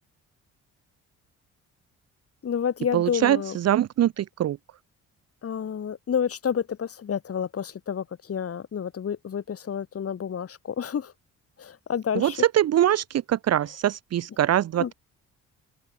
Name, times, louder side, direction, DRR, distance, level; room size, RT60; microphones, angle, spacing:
voice 1, 2.4-3.6 5.4-11.1 11.6-12.4 14.7-14.9, left 8 dB, 50° left, 4.1 m, -29 dB
voice 2, 2.9-3.4 3.6-4.6 12.2-14.9, right 12 dB, 55° right, 0.8 m, -23 dB
open air
cardioid pair, 90°, 30 cm